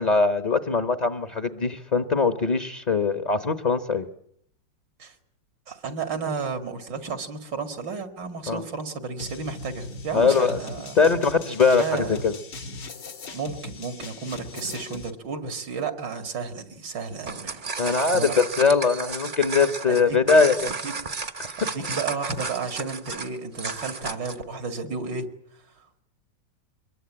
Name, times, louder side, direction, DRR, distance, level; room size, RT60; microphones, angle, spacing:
voice 1, 0.0-4.1 8.5-8.6 10.1-10.6 10.9-12.4 17.8-20.7, left 4 dB, 30° left, 10 dB, 0.9 m, -21 dB
voice 2, 5.7-11.0 11.8-12.2 13.3-18.4 19.9-20.2 20.6-20.9 21.6-26.0, right 5 dB, 75° right, 8 dB, 2.8 m, -33 dB
sound 1, 9.2-15.1, left 2 dB, 75° left, 2.4 m, -39 dB
sound 2, 17.1-24.4, right 4 dB, 35° right, 1.0 m, -33 dB
23.5 x 21.5 x 8.7 m, 0.67 s
omnidirectional pair, 1.9 m